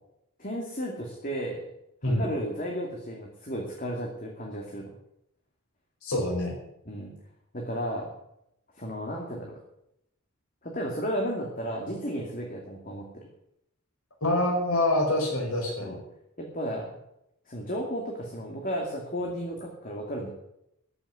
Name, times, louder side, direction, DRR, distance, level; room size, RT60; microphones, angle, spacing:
voice 1, 0.4-1.7 2.0-4.8 6.9-7.1 7.5-8.1 8.8-9.5 10.6-13.1 15.8-16.0 16.4-16.9 17.5-20.3, equal, 40° left, -1 dB, 2.5 m, -33 dB
voice 2, 6.0-6.6 14.2-16.0, left 1 dB, 85° left, -1 dB, 4.8 m, -26 dB
14.5 x 7.0 x 9.8 m, 0.80 s
head